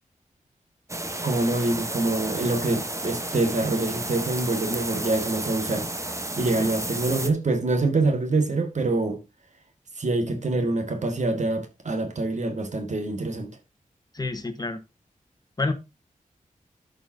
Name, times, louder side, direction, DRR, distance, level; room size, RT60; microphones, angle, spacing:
sound 1, 0.9-7.3, right 2 dB, 20° right, 1.1 m, -32 dB
voice 1, 1.2-5.9 6.4-9.2 10.0-13.5, right 2 dB, 55° right, 1.8 m, -25 dB
voice 2, 14.1-14.8 15.6-15.7, left 3 dB, 30° left, 1.5 m, -28 dB
13.5 x 5.4 x 2.8 m
wide cardioid pair, 75°, 14 cm